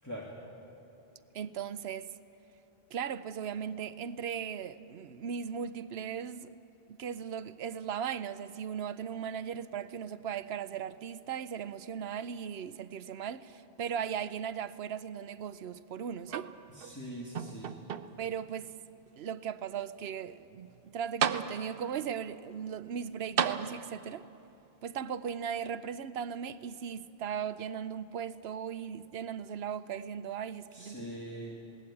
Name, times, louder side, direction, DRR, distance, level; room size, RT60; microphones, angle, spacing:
voice 1, 0.0-0.3 16.7-17.7 30.7-31.5, equal, 15° left, 2.3 m, -42 dB
voice 2, 1.3-2.1 2.9-6.5 6.9-16.5 18.2-18.7 19.2-24.2 24.8-31.1, right 8 dB, 90° right, 0.9 m, -38 dB
sound 1, 16.3-17.0 17.4-18.4 19.1-19.2 20.7-20.8 21.2-22.0 23.4-24.2 25.3-25.4, right 7 dB, 65° right, 0.9 m, -34 dB
20.5 x 18.0 x 8.6 m
omnidirectional pair, 1.0 m